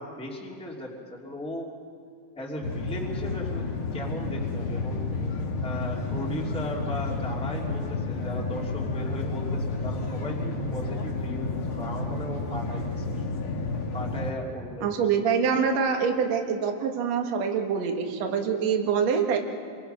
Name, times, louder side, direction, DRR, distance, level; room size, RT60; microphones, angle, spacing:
voice 1, 0.0-1.7 2.3-3.6 3.9-5.0 5.6-13.4 13.9-14.9, left 1 dB, ahead, -2 dB, 2.4 m, -37 dB
sound 1, 2.6-14.3, left 3 dB, 45° left, 2.2 m, -31 dB
voice 2, 14.8-19.4, right 6 dB, 55° right, 3 dB, 2.6 m, -25 dB
30.0 x 25.5 x 5.7 m, 2.3 s
omnidirectional pair, 3.9 m